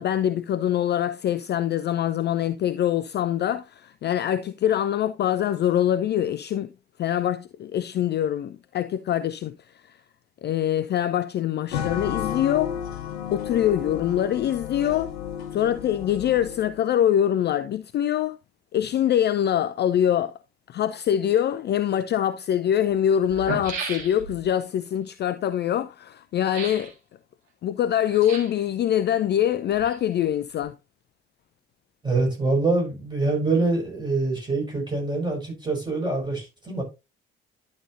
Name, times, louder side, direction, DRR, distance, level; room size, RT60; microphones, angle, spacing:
voice 1, 0.0-6.7 7.0-9.5 9.9-10.0 10.4-12.7 13.3-15.1 15.5-18.4 18.7-20.4 20.7-26.9 27.6-30.7, left 10 dB, 35° left, 0.4 m, -24 dB
sound 1, 11.7-16.8, left 9 dB, 75° left, 0.9 m, -32 dB
sound 2, 21.9-22.0 22.9-23.0 23.2-24.5 26.4-26.9 28.1-28.6 29.5-30.3 30.6-30.7, right 5 dB, 70° right, 1.9 m, -35 dB
voice 2, 32.0-36.8, right 3 dB, 15° right, 5.3 m, -25 dB
11.0 x 6.4 x 2.6 m
figure-of-eight pair, 45°, 31 cm